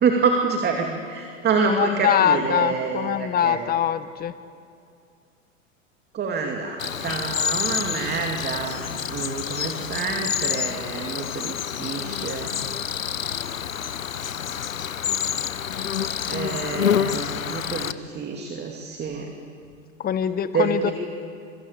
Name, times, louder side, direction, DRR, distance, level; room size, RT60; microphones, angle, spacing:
voice 1, 0.0-3.6 6.1-12.5 16.2-19.3 20.5-20.9, right 5 dB, 25° right, 3 dB, 2.7 m, -27 dB
voice 2, 1.6-4.3 20.0-20.9, left 9 dB, 25° left, 13 dB, 1.2 m, -23 dB
Cricket, 6.8-17.9, left 8 dB, 80° left, 1.0 m, -28 dB
26.5 x 23.5 x 8.6 m, 2.4 s
figure-of-eight pair, 95°, 39 cm